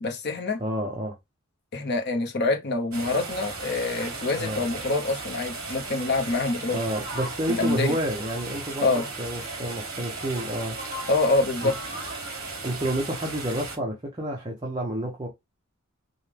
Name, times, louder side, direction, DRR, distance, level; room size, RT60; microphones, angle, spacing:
voice 1, 0.0-0.6 1.7-6.8 7.5-8.0 8.8-9.1 11.1-11.8, left 3 dB, 55° left, 0.9 m, -26 dB
voice 2, 0.6-1.1 4.4-4.6 6.7-10.8 11.6-11.7 12.6-15.3, right 1 dB, 25° right, 1.0 m, -29 dB
sound 1, 2.9-13.8, right 3 dB, 45° right, 3.2 m, -36 dB
5.3 x 2.4 x 3.4 m
head